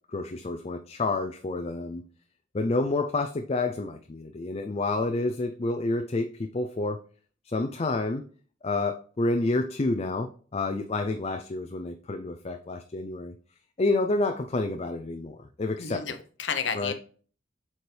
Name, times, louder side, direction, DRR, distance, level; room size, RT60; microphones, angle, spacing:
voice 1, 0.1-2.0 2.5-7.0 7.5-8.2 8.6-13.3 13.8-16.1 16.7-16.9, left 2 dB, 35° left, 0.4 m, -29 dB
voice 2, 15.8-16.9, left 6 dB, 85° left, 0.9 m, -31 dB
7.9 x 4.3 x 3.3 m
head